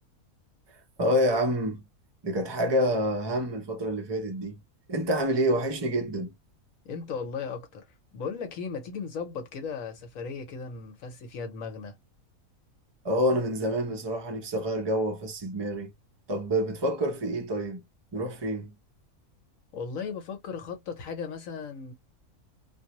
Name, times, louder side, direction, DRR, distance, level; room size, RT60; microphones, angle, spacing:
voice 1, 1.0-1.8 2.2-4.6 4.9-6.3 13.0-15.9 16.3-17.8 18.1-18.7, equal, 35° right, 0.4 m, -27 dB
voice 2, 6.8-7.9 8.1-11.9 19.7-21.9, left 5 dB, 65° left, 1.2 m, -36 dB
2.6 x 2.0 x 2.9 m
omnidirectional pair, 1.6 m